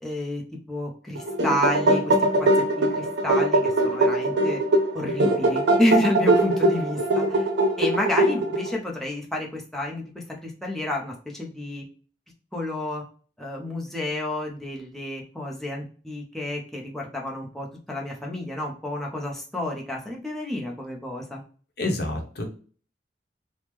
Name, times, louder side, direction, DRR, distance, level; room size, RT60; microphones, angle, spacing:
voice 1, 0.0-4.6 4.9-7.5 7.8-11.8 12.5-13.0 13.4-21.4, left 1 dB, ahead, -2 dB, 0.5 m, -30 dB
sound 1, 1.2-8.8, right 1 dB, 80° right, 0.6 m, -22 dB
voice 2, 21.8-22.4, left 2 dB, 65° left, 3 dB, 0.8 m, -28 dB
3.5 x 2.0 x 2.9 m, 0.41 s
head